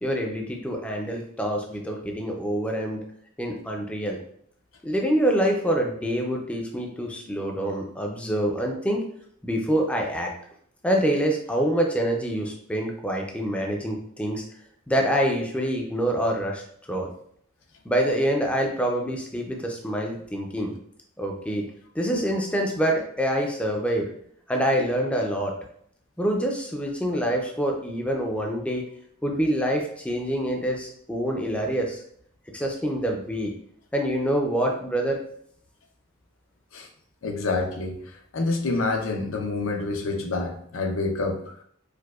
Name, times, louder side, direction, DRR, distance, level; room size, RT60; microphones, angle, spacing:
voice 1, 0.0-3.0 3.4-4.2 4.8-9.0 9.4-10.3 10.8-14.4 14.9-16.6 16.9-17.1 17.9-20.7 21.2-21.6 22.0-24.1 24.5-25.5 26.2-28.8 29.2-32.0 32.5-33.5 33.9-35.2, equal, 5° left, 1 dB, 0.4 m, -26 dB
voice 2, 37.2-41.4, left 3 dB, 80° left, 3 dB, 0.5 m, -28 dB
4.6 x 2.1 x 2.3 m, 0.65 s
head